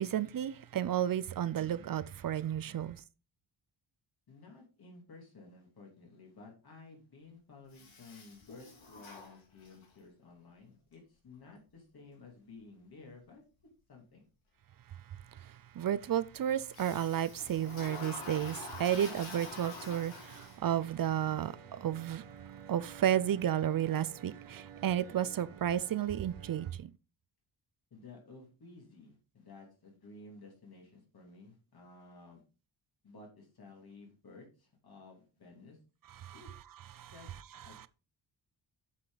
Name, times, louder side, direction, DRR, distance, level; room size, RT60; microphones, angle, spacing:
voice 1, 0.0-3.0 15.4-22.3 22.7-26.9 36.2-36.4 36.9-37.1 37.7-37.9, right 10 dB, 50° right, 0.5 m, -32 dB
voice 2, 4.3-13.4 13.9-14.3 27.9-32.4 33.0-35.8 36.3-36.5 37.1-37.3 37.6-37.9, left 3 dB, 50° left, 2.7 m, -54 dB
Toilet flush, 7.7-10.0 16.7-20.9, left 3 dB, 85° left, 3.2 m, -47 dB
sound 1, 18.4-26.7, right 8 dB, 85° right, 1.1 m, -53 dB
8.3 x 5.7 x 3.9 m
wide cardioid pair, 150°, 46 cm